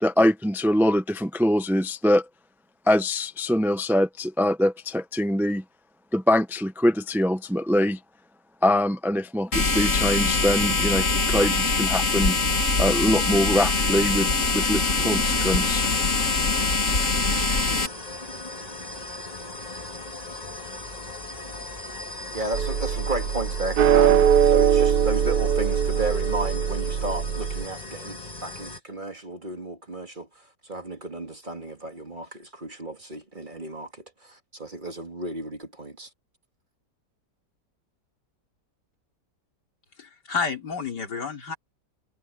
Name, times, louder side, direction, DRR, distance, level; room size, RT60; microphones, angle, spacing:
voice 1, 0.0-2.2 2.9-5.6 6.1-8.0 8.6-12.4 12.8-15.9, left 1 dB, 5° right, 0.4 m, -23 dB
sound 1, 9.5-17.9, left 3 dB, 45° left, 3.0 m, -23 dB
sound 2, 11.1-28.8, left 2 dB, 20° left, 2.1 m, -39 dB
voice 2, 22.3-36.1, right 2 dB, 25° right, 2.6 m, -33 dB
sound 3, 22.5-27.6, right 8 dB, 65° right, 1.5 m, -21 dB
voice 3, 40.0-41.6, left 5 dB, 70° left, 3.8 m, -30 dB
omnidirectional pair, 1.9 m